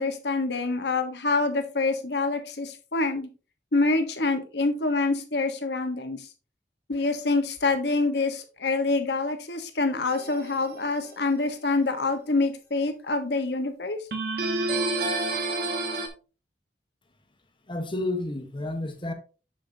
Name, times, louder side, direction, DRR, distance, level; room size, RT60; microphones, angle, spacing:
voice 1, 0.0-3.3 3.7-6.3 6.9-14.0, left 3 dB, 65° left, 1.2 m, -26 dB
sound 1, 10.1-10.7 14.1-16.1, right 2 dB, 60° right, 1.3 m, -28 dB
voice 2, 17.7-19.1, left 2 dB, 30° left, 1.1 m, -30 dB
7.1 x 6.6 x 2.7 m
head